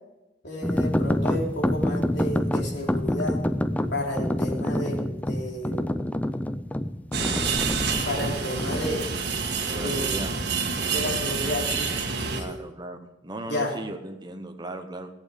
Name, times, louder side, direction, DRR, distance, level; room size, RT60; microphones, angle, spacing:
voice 1, 0.4-3.4 3.9-6.0 8.0-9.0 9.7-10.2 10.9-12.6 13.4-13.7, left 1 dB, 65° left, -1 dB, 3.1 m, -32 dB
sound 1, 0.6-9.0, left 1 dB, 10° left, 0.4 m, -27 dB
sound 2, 7.1-12.4, right 5 dB, 60° right, 1.6 m, -28 dB
voice 2, 9.7-10.3 12.3-15.1, right 1 dB, 25° right, 6 dB, 0.9 m, -36 dB
17.0 x 8.6 x 5.0 m, 0.97 s
head